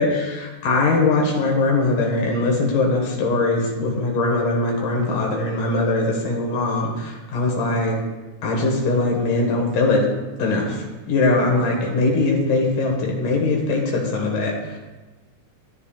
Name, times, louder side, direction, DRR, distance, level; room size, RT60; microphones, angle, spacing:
voice 1, 0.0-7.9 8.4-10.0 10.4-14.8, left 2 dB, 90° left, -1 dB, 3.2 m, -21 dB
14.5 x 10.0 x 2.4 m, 1.2 s
omnidirectional pair, 3.6 m